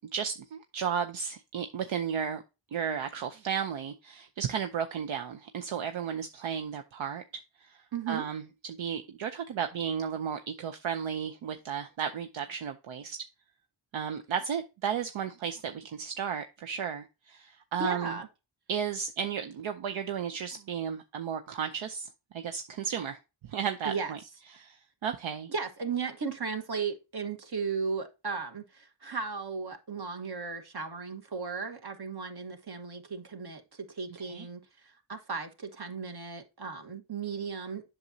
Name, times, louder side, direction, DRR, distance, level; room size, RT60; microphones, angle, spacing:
voice 1, 0.1-2.4 2.7-7.2 7.6-13.2 13.9-18.2 18.7-23.2 23.5-24.2 24.5-25.5 34.3-34.5, right 7 dB, 70° right, 0.7 m, -34 dB
voice 2, 7.9-8.2 17.8-18.3 23.8-24.1 25.5-37.8, right 5 dB, 50° right, 1.4 m, -36 dB
7.7 x 6.0 x 2.7 m
cardioid pair, 50°, 48 cm